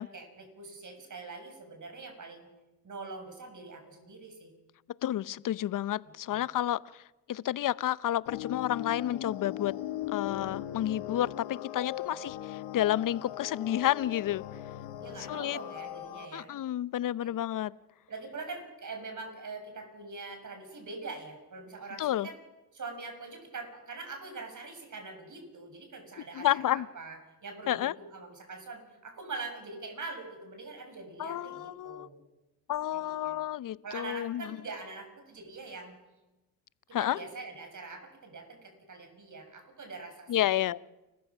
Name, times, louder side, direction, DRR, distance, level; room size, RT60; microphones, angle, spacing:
voice 1, 0.1-2.5 2.8-4.5 6.3-6.4 12.0-12.1 15.0-16.5 17.2-17.3 18.1-22.4 22.7-32.2 32.9-33.4 33.8-36.0 36.9-40.3, right 3 dB, 40° right, 5 dB, 6.9 m, -43 dB
voice 2, 5.0-7.0 7.3-9.7 10.1-14.4 15.2-15.6 16.3-17.7 22.0-22.3 26.3-26.9 27.7-27.9 31.2-32.1 32.7-34.6 36.9-37.2 40.3-40.8, left 12 dB, 45° left, 21 dB, 0.7 m, -30 dB
sound 1, 8.3-16.3, left 12 dB, 75° left, 2.0 m, -39 dB
30.0 x 15.0 x 6.2 m, 1.0 s
hypercardioid pair, 65°, 46 cm